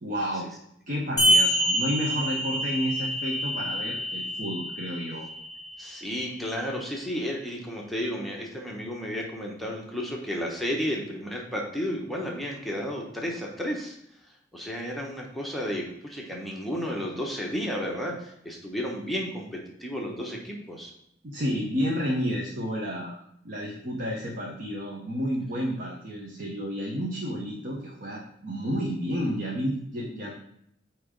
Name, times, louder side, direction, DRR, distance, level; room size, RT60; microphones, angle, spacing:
voice 1, 0.0-0.5 0.9-5.3 21.2-23.2 23.4-30.3, equal, 50° right, -2 dB, 1.1 m, -31 dB
sound 1, 1.2-6.2, equal, 20° left, 2.3 m, -27 dB
voice 2, 5.8-14.0 14.5-20.9, equal, ahead, -2 dB, 1.0 m, -32 dB
8.5 x 3.1 x 5.2 m, 0.73 s
head